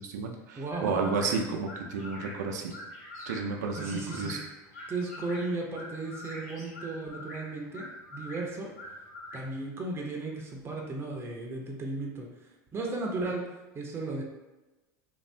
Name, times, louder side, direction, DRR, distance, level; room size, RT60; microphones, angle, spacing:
voice 1, 0.0-2.7 3.3-4.4, right 4 dB, 80° right, 3 dB, 0.5 m, -32 dB
voice 2, 0.6-1.1 3.8-4.4 4.9-8.7 9.3-12.3 12.7-13.4 13.7-14.2, right 2 dB, 25° right, 0 dB, 0.6 m, -35 dB
sound 1, 0.7-9.4, left 1 dB, 80° left, 1.3 m, -45 dB
2.6 x 2.4 x 3.2 m, 1.1 s
hypercardioid pair, 85°, 9 cm